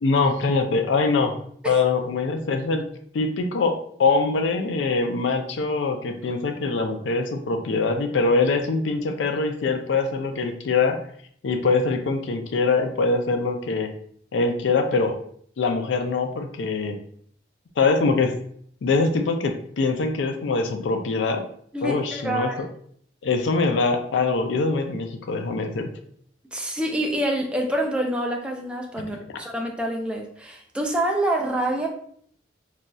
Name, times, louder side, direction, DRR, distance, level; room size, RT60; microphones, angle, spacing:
voice 1, 0.0-1.3 1.6-2.9 3.1-11.0 11.4-13.9 14.3-15.2 15.6-17.0 17.8-18.3 18.8-21.4 21.8-22.7 23.2-25.9, left 4 dB, 85° left, 6 dB, 0.4 m, -23 dB
voice 2, 21.7-22.6 26.5-31.9, right 1 dB, 5° right, 1 dB, 0.3 m, -26 dB
3.0 x 2.6 x 2.2 m, 0.62 s
head